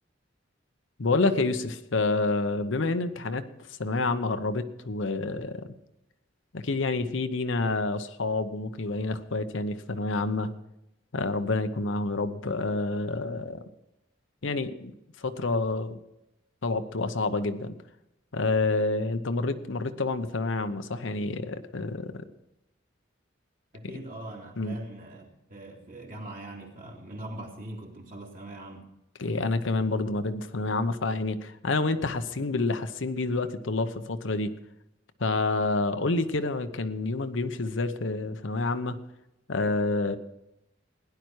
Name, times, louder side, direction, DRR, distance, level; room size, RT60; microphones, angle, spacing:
voice 1, 1.0-3.4 3.7-5.7 6.5-10.5 11.1-13.6 14.4-16.0 16.6-17.8 18.3-22.2 24.6-24.8 29.2-34.5 35.2-39.0 39.5-40.2, left 3 dB, 75° left, 10 dB, 0.8 m, -28 dB
voice 2, 23.7-28.9, right 1 dB, 45° right, -1 dB, 2.8 m, -42 dB
16.5 x 10.5 x 4.7 m, 0.88 s
head